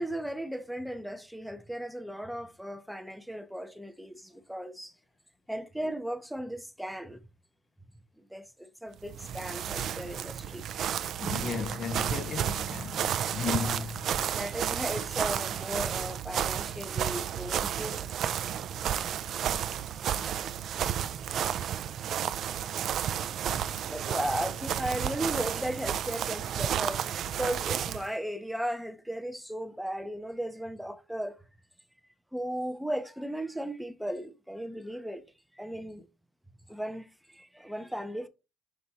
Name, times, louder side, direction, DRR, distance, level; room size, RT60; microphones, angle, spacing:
voice 1, 0.0-4.9 5.5-7.2 8.3-11.0 13.6-13.8 14.3-18.1 23.8-31.4 32.3-35.2 35.6-36.1 36.7-37.1 37.3-38.3, equal, ahead, 0.6 m, -36 dB
sound 1, 9.0-28.1, right 9 dB, 55° right, 0.4 m, -32 dB
voice 2, 11.2-14.2, left 7 dB, 45° left, 0.5 m, -35 dB
5.9 x 5.1 x 4.2 m
cardioid pair, 110°, 0 cm